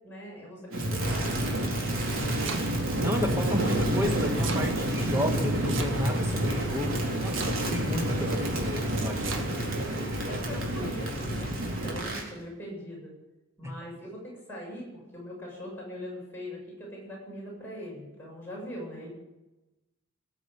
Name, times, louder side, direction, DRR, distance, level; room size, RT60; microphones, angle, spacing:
voice 1, 0.0-2.5 9.4-9.7 10.3-13.1 13.6-19.1, equal, 10° left, -5 dB, 7.4 m, -42 dB
Crackle, 0.7-12.3, right 1 dB, 85° right, 3.8 m, -29 dB
Domestic sounds home sounds, 2.4-3.0 4.0-4.7 5.7-6.3 7.2-7.9 9.0-9.5, right 5 dB, 65° right, 1.6 m, -37 dB
voice 2, 3.0-9.3 13.6-13.7, equal, 15° right, 3 dB, 1.8 m, -32 dB
18.0 x 7.9 x 8.1 m, 1.0 s
head